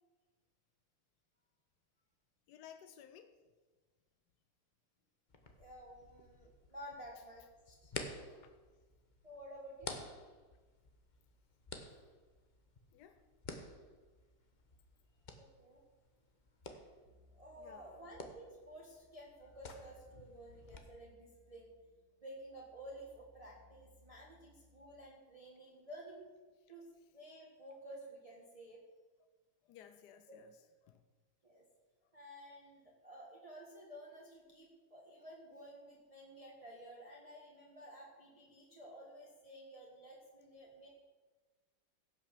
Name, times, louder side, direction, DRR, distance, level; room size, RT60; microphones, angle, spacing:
voice 1, 2.5-3.3 8.4-8.5 12.9-13.2 17.6-18.0 29.6-30.6 30.8-31.0, left 9 dB, 70° left, 8 dB, 1.0 m, -57 dB
sound 1, 5.3-20.8, left 3 dB, 40° left, 0.6 m, -52 dB
voice 2, 5.6-8.5 9.2-9.9 15.4-15.8 17.3-21.7 22.2-26.3 26.7-26.9 27.1-28.8 30.3-30.4 31.4-31.6 32.1-40.9, equal, 20° right, -4 dB, 1.5 m, -53 dB
sound 2, 17.0-25.1, left 2 dB, 60° right, 1.5 m, -67 dB
16.5 x 6.0 x 6.6 m, 1.3 s
omnidirectional pair, 2.4 m